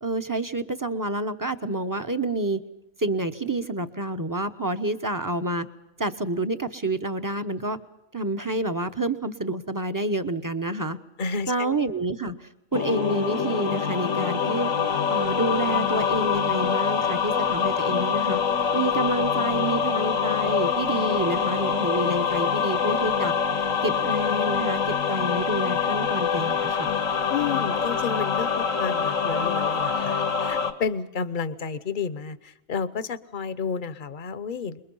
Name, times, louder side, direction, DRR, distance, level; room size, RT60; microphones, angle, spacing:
voice 1, 0.0-2.6 3.0-5.7 6.0-7.8 8.1-11.0 11.5-14.7 15.1-18.4 18.7-26.9, right 2 dB, 15° right, 10 dB, 0.9 m, -28 dB
voice 2, 11.2-11.8 27.3-34.8, left 6 dB, 45° left, 15 dB, 1.0 m, -31 dB
sound 1, 12.7-30.7, left 6 dB, 90° left, 2.1 m, -25 dB
27.5 x 22.0 x 5.5 m, 0.87 s
omnidirectional pair, 1.3 m